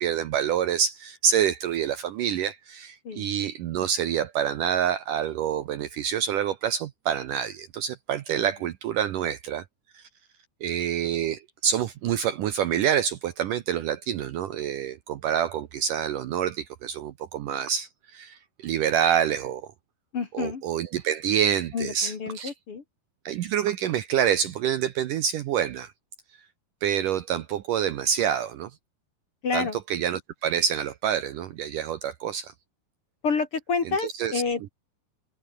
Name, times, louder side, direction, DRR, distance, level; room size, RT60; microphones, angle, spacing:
voice 1, 0.0-9.6 9.9-10.0 10.6-19.6 20.3-22.5 23.3-25.9 26.8-28.7 29.5-32.5 33.9-34.4, right 9 dB, 70° right, 2.2 m, -27 dB
voice 2, 20.1-20.6 21.7-22.8 29.4-29.8 33.2-34.7, left 5 dB, 40° left, 2.5 m, -28 dB
omnidirectional pair, 4.7 m